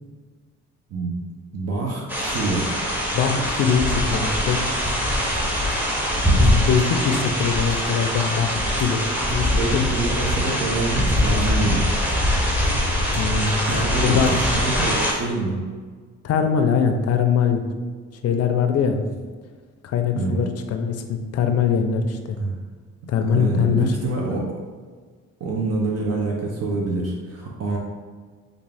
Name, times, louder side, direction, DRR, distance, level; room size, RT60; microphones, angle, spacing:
voice 1, 1.5-2.7 9.6-11.8 13.7-15.6 20.1-20.4 22.4-22.6 23.3-24.5 25.4-27.8, right 3 dB, 55° right, -2 dB, 0.7 m, -26 dB
sound 1, 2.1-15.1, equal, 5° right, 0.8 m, -22 dB
voice 2, 3.1-4.6 6.4-9.0 9.3-9.8 13.2-13.6 14.0-14.3 16.2-17.7 18.2-19.0 19.8-22.2 23.1-23.9, left 6 dB, 55° left, 6 dB, 0.5 m, -22 dB
3.5 x 2.4 x 3.3 m, 1.5 s
cardioid pair, 90°, 30 cm